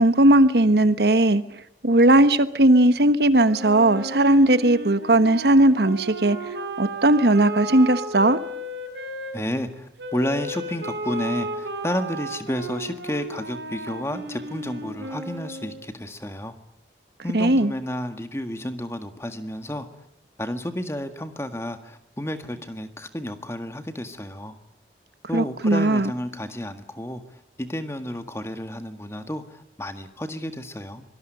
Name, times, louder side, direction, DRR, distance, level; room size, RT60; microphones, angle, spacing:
voice 1, 0.0-1.4 1.8-6.4 6.8-8.4 17.3-17.7 25.3-26.1, right 1 dB, 75° right, 12 dB, 1.2 m, -17 dB
Wind instrument woodwind instrument, 3.4-9.3 10.0-15.8, right 1 dB, 90° right, 5.5 m, -34 dB
voice 2, 9.3-16.6 17.2-19.9 20.4-24.6 25.3-27.2 27.6-31.0, left 1 dB, 15° left, 8 dB, 1.8 m, -31 dB
25.0 x 19.0 x 9.2 m, 0.82 s
head